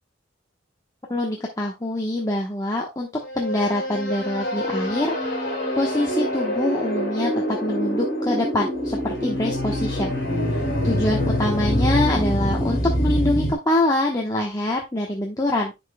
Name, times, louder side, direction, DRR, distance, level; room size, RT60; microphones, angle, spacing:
voice 1, 1.1-3.1 3.3-10.2 10.5-15.7, left 1 dB, 20° left, -1 dB, 1.0 m, -25 dB
sound 1, 3.2-13.5, equal, 55° left, 3.1 m, -25 dB
10.5 x 5.3 x 2.2 m, 0.22 s
head